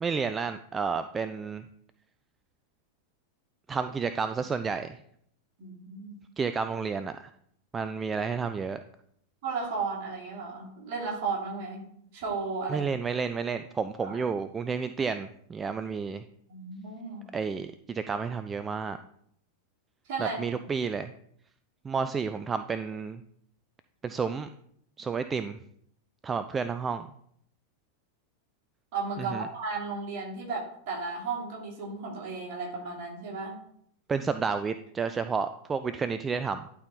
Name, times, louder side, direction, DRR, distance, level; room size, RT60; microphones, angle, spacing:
voice 1, 0.0-1.6 3.7-5.0 6.4-7.3 7.7-8.8 12.7-16.2 17.3-19.0 20.2-21.1 21.8-23.2 24.0-24.5 25.0-25.6 26.2-27.1 29.2-29.5 34.1-36.7, right 5 dB, 20° right, 11 dB, 0.3 m, -31 dB
voice 2, 5.6-6.1 9.4-11.9 12.1-12.8 14.0-14.2 16.5-17.3 20.0-20.4 28.9-33.5, right 4 dB, 45° right, -2 dB, 3.1 m, -34 dB
11.5 x 4.5 x 3.9 m, 0.69 s
figure-of-eight pair, 90°, 0 cm